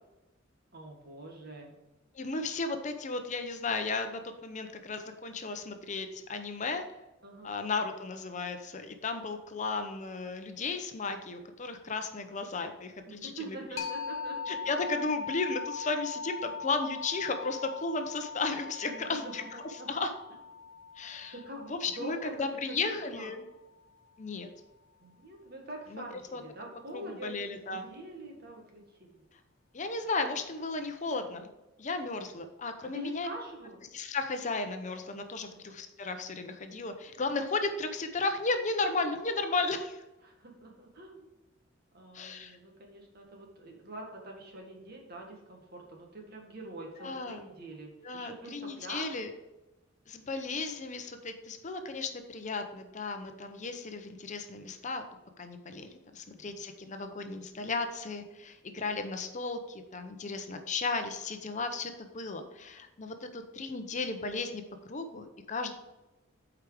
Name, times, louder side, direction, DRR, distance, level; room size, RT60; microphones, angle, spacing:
voice 1, 0.7-1.8 7.2-7.6 13.0-14.7 18.8-19.9 21.3-23.3 25.0-27.4 27.7-29.2 32.9-33.8 35.5-35.6 40.2-41.3 41.9-49.3 56.3-56.6, right 1 dB, 55° right, 1 dB, 1.8 m, -45 dB
voice 2, 2.1-6.8 7.4-13.6 14.5-19.4 19.9-20.1 21.0-21.3 21.7-23.4 24.2-24.5 25.9-26.0 26.3-26.4 26.9-27.9 29.7-31.5 31.8-33.3 33.9-40.0 42.1-42.6 47.0-47.4 48.0-49.3 50.1-55.0 55.4-65.7, left 3 dB, 40° left, 7 dB, 0.7 m, -35 dB
sound 1, 13.8-23.2, left 5 dB, 90° left, 0.9 m, -41 dB
8.2 x 4.9 x 4.9 m, 1.0 s
head